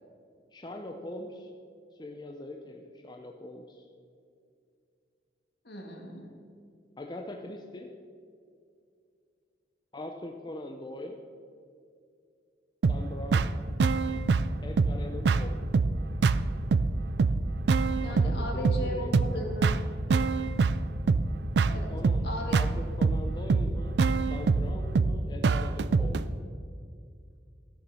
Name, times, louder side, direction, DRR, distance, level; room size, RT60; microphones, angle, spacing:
voice 1, 0.5-1.5 1.9-3.9 7.0-7.9 9.9-11.2 12.9-13.5 14.6-15.6 18.1-19.1 21.9-22.3 22.5-24.0 24.3-26.2, left 1 dB, 25° left, 3 dB, 0.6 m, -42 dB
voice 2, 5.6-6.3 18.0-19.7 21.7-21.9 22.2-22.6, equal, 60° left, 1 dB, 2.1 m, -36 dB
sound 1, 12.8-26.2, right 4 dB, 70° right, 0.4 m, -26 dB
14.0 x 6.9 x 6.2 m, 2.3 s
head